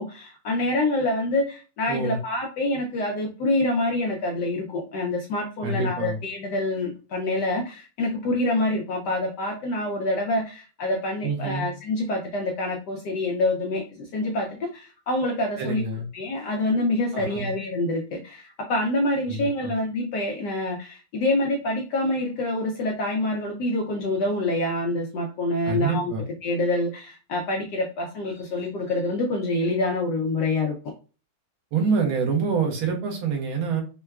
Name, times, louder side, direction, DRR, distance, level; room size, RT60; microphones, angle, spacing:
voice 1, 0.0-15.8 16.1-26.1 26.4-30.7, left 2 dB, 70° left, 0 dB, 1.1 m, -26 dB
voice 2, 1.9-2.2 5.6-6.2 11.2-11.7 15.6-16.1 17.1-17.5 19.3-19.7 25.7-26.3 31.7-33.8, right 4 dB, 85° right, 1 dB, 1.7 m, -26 dB
4.5 x 2.1 x 2.3 m, 0.34 s
omnidirectional pair, 2.2 m